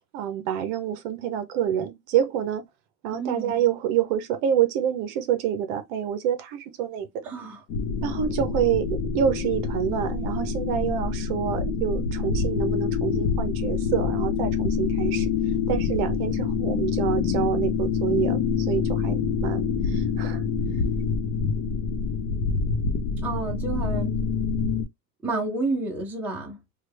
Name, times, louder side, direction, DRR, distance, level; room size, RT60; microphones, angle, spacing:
voice 1, 0.0-2.6 3.0-7.3 8.0-15.3 15.7-20.4, right 9 dB, 50° right, 0.6 m, -27 dB
voice 2, 3.1-3.6 7.2-7.6 23.2-24.2 25.2-26.6, right 3 dB, 5° right, 0.5 m, -30 dB
sound 1, 7.7-24.8, left 5 dB, 65° left, 0.8 m, -26 dB
3.2 x 2.3 x 3.2 m
cardioid pair, 170°, 40 cm